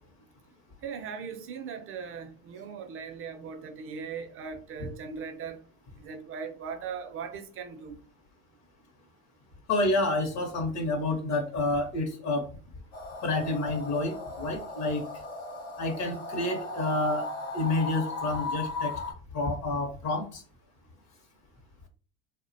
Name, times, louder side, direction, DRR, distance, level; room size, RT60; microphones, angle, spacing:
voice 1, 0.8-5.6 6.0-8.0, right 6 dB, 35° right, 0.4 m, -39 dB
voice 2, 9.7-12.5 13.2-15.0 15.8-17.3 17.5-18.9 19.3-20.4, left 2 dB, 45° left, 0.7 m, -29 dB
sound 1, 12.9-19.1, left 3 dB, 90° left, 0.9 m, -37 dB
2.5 x 2.1 x 2.5 m
supercardioid pair, 90°, 38 cm